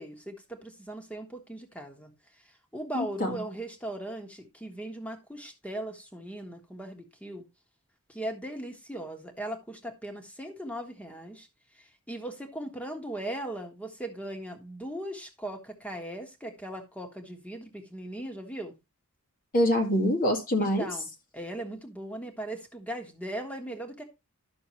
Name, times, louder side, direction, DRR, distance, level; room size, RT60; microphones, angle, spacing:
voice 1, 0.0-2.1 2.7-7.4 8.1-11.5 11.8-18.7 20.6-21.1 21.3-24.0, right 1 dB, 5° left, 1.5 m, -38 dB
voice 2, 2.9-3.4 19.5-20.9, equal, 40° left, 1.9 m, -25 dB
11.5 x 6.4 x 3.1 m
head